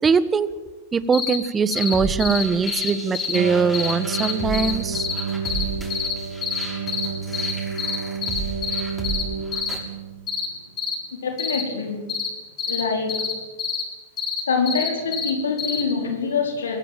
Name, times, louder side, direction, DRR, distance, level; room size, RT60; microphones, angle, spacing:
voice 1, 0.0-0.5 0.9-5.1, right 5 dB, 20° right, 15 dB, 1.4 m, -21 dB
sound 1, 1.1-1.4 1.7-1.9 2.2-3.4 3.7-5.6 5.9-6.1 6.4-7.1 7.3-7.5 7.8-8.0 8.2-9.2 9.5-9.8 10.3-10.5 10.8-11.0 11.4-11.6 12.1-12.3 12.6-12.8 13.1-13.3 13.6-13.8 14.2-15.3 15.6-15.8, left 6 dB, 35° left, 6.4 m, -26 dB
sound 2, 1.7-9.8, right 2 dB, 5° left, 6.8 m, -34 dB
sound 3, 3.3-10.4, right 6 dB, 80° right, 2.1 m, -30 dB
voice 2, 11.2-12.1 12.7-13.3 14.5-16.8, left 5 dB, 85° left, 3 dB, 4.5 m, -25 dB
22.5 x 16.5 x 9.1 m, 1.2 s
hypercardioid pair, 105°, 0 cm